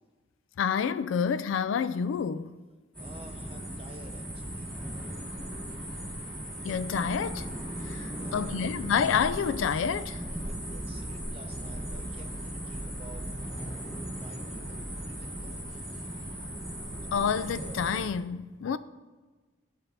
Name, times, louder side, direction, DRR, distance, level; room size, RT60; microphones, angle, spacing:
voice 1, 0.6-2.6 6.6-7.5 7.8-10.2 17.1-18.8, left 7 dB, 75° left, 0.3 m, -28 dB
voice 2, 2.7-4.8 8.1-8.9 10.4-13.3 14.1-15.7, right 2 dB, 30° right, 0.7 m, -52 dB
sound 1, 2.9-18.1, right 1 dB, 5° left, 2.6 m, -37 dB
13.0 x 4.4 x 3.3 m
head